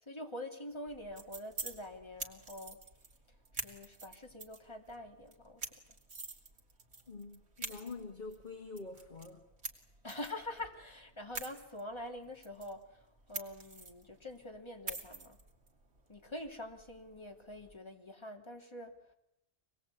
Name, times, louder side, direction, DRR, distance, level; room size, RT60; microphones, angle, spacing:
voice 1, 0.0-2.8 3.5-5.6 10.0-15.4 16.1-19.0, left 1 dB, 25° left, 2 dB, 2.9 m, -45 dB
sound 1, 0.9-17.8, right 3 dB, 75° right, 2.7 m, -48 dB
voice 2, 7.1-9.4, left 3 dB, 45° left, 3 dB, 2.4 m, -46 dB
26.0 x 20.5 x 8.3 m, 0.84 s
omnidirectional pair, 1.1 m